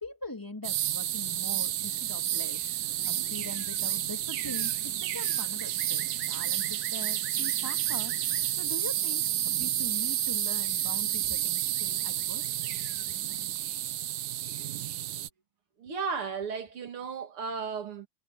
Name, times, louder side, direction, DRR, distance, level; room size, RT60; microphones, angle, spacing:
voice 1, 0.0-2.6 3.0-8.2 8.5-12.5, left 1 dB, 10° left, 2.9 m, -42 dB
sound 1, 0.6-15.3, right 12 dB, 65° right, 1.2 m, -30 dB
voice 2, 15.8-18.1, right 5 dB, 90° right, 3.1 m, -34 dB
omnidirectional pair, 2.3 m